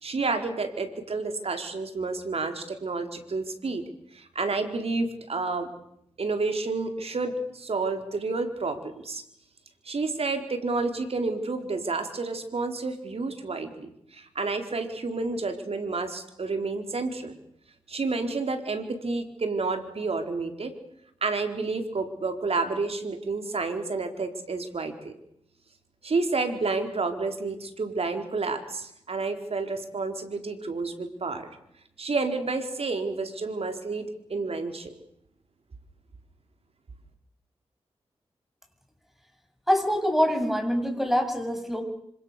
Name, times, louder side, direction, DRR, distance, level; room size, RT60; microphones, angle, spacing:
voice 1, 0.0-3.9 4.1-5.7 6.2-9.2 9.8-17.4 17.9-20.7 21.2-25.1 26.0-31.5 32.0-34.9, right 3 dB, 65° right, 6 dB, 4.3 m, -30 dB
voice 2, 39.7-41.8, equal, ahead, 5 dB, 7.6 m, -25 dB
27.0 x 26.5 x 6.8 m, 0.74 s
cardioid pair, 50°, 11 cm